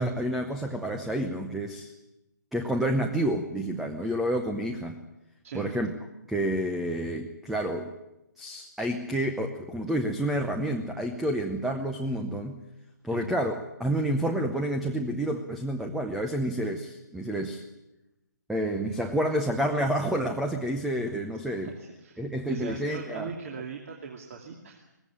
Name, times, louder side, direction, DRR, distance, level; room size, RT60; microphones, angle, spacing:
voice 1, 0.0-1.9 2.5-5.0 5.5-5.9 6.3-7.9 8.4-12.6 13.0-17.6 18.5-21.7 22.2-23.3, right 1 dB, ahead, 5 dB, 0.8 m, -29 dB
voice 2, 21.5-24.8, right 6 dB, 45° right, 1 dB, 2.7 m, -40 dB
20.0 x 16.0 x 10.0 m, 0.93 s
hypercardioid pair, 160°, 10 cm